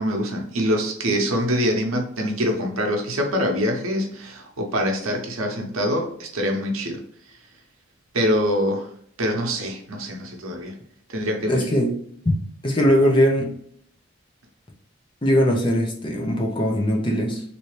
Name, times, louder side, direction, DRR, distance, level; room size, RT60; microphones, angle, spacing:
voice 1, 0.0-7.0 8.1-8.9 9.2-10.7 11.1-11.7, equal, 85° right, 2 dB, 0.8 m, -24 dB
voice 2, 11.5-12.0 12.2-12.4 12.6-13.5 15.2-17.4, equal, 25° left, -1 dB, 0.6 m, -20 dB
3.1 x 2.7 x 3.1 m, 0.63 s
head